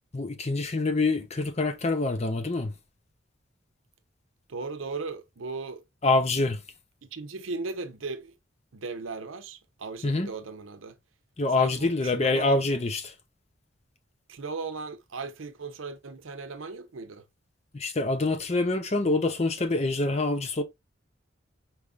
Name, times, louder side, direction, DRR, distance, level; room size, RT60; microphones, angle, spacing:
voice 1, 0.1-2.7 6.0-6.6 10.0-10.3 11.4-13.1 17.7-20.6, left 2 dB, 35° left, 0.6 m, -26 dB
voice 2, 4.5-5.9 7.0-8.3 8.7-11.0 11.6-12.6 14.3-17.2, right 4 dB, 85° right, 0.7 m, -37 dB
4.6 x 3.5 x 2.4 m
head